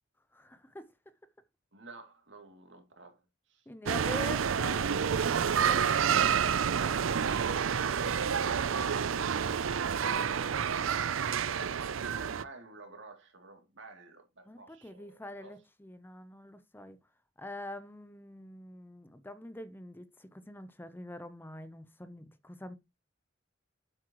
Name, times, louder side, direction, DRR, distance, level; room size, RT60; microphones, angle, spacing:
voice 1, 0.3-0.9 3.7-5.0 5.2-6.4 14.5-17.0 17.4-22.8, left 1 dB, 10° left, 0.7 m, -45 dB
voice 2, 1.7-3.2 3.5-3.7 12.1-15.6, right 3 dB, 65° right, 2.8 m, -51 dB
sound 1, 3.9-12.4, right 7 dB, 90° right, 0.5 m, -29 dB
9.4 x 7.7 x 3.0 m
head